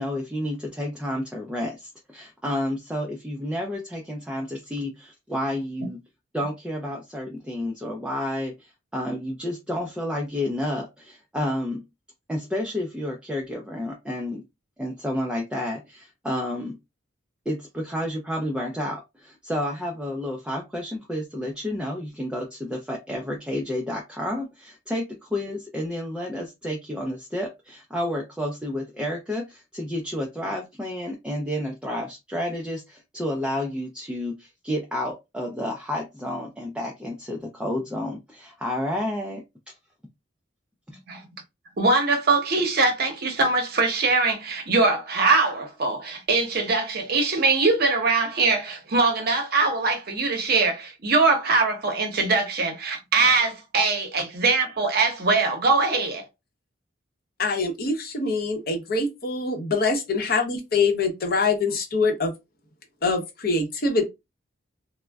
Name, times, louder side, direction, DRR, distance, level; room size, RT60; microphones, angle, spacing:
voice 1, 0.0-6.0 6.3-11.8 12.3-14.4 14.8-16.8 17.5-39.4, left 1 dB, 5° right, 0.4 m, -30 dB
voice 2, 41.8-56.2, right 3 dB, 50° right, 0.7 m, -22 dB
voice 3, 57.4-62.3 63.0-64.0, left 3 dB, 50° left, 0.8 m, -24 dB
3.5 x 2.0 x 2.2 m
head